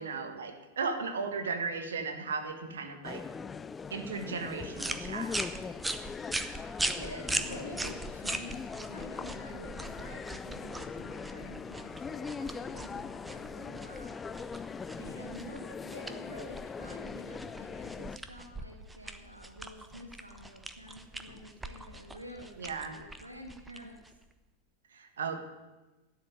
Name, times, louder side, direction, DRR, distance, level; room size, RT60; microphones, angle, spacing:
voice 1, 0.0-3.2 3.9-5.3 22.6-23.0 24.9-25.4, right 4 dB, 65° right, 6 dB, 1.5 m, -36 dB
sound 1, 3.0-18.2, left 5 dB, 15° left, 0.4 m, -41 dB
sound 2, 4.7-24.3, right 2 dB, 5° right, 0.9 m, -40 dB
voice 2, 7.0-14.7 15.0-24.0, equal, 85° right, 3 dB, 1.3 m, -48 dB
12.0 x 6.6 x 9.6 m, 1.1 s
figure-of-eight pair, 90°, 0 cm